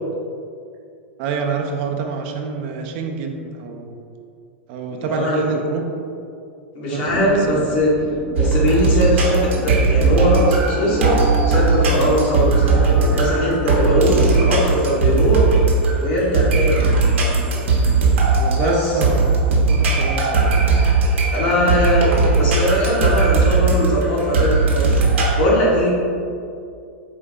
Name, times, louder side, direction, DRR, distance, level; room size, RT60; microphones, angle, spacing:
voice 1, 1.2-4.0 4.7-5.9 6.9-7.7 18.4-20.6, right 5 dB, 55° right, 3 dB, 0.5 m, -27 dB
voice 2, 5.0-5.5 6.7-7.9 8.4-11.2 11.5-15.5 16.0-16.9 18.6-19.0 21.3-22.1 22.4-25.0 25.4-25.9, equal, 60° left, -6 dB, 1.5 m, -20 dB
sound 1, 7.1-14.4, right 2 dB, 10° right, 0.6 m, -32 dB
sound 2, 8.4-25.3, right 4 dB, 75° right, 0.8 m, -18 dB
4.4 x 2.6 x 3.6 m, 2.4 s
hypercardioid pair, 110°, 7 cm